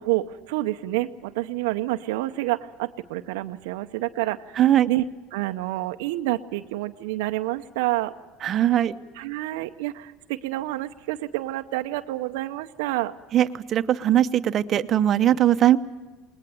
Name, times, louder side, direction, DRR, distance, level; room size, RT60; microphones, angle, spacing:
voice 1, 0.0-4.6 4.9-5.0 5.3-8.1 9.2-13.1, right 17 dB, 75° right, 8 dB, 0.7 m, -28 dB
voice 2, 4.6-4.9 8.4-8.9 13.3-15.8, right 11 dB, 45° right, 10 dB, 0.8 m, -20 dB
20.0 x 20.0 x 9.2 m, 1.2 s
supercardioid pair, 95°, 0 cm